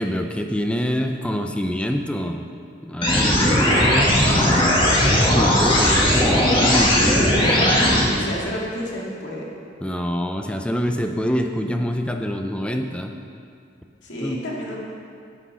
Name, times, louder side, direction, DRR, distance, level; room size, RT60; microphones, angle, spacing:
voice 1, 0.0-2.5 2.8-7.4 9.8-13.1 14.2-14.4, equal, 5° left, 4 dB, 0.5 m, -26 dB
sound 1, 3.0-8.0, left 1 dB, 25° left, 1.8 m, -17 dB
voice 2, 7.4-9.5 14.0-14.8, left 1 dB, 65° left, -4 dB, 2.3 m, -30 dB
9.6 x 8.5 x 5.7 m, 2.4 s
head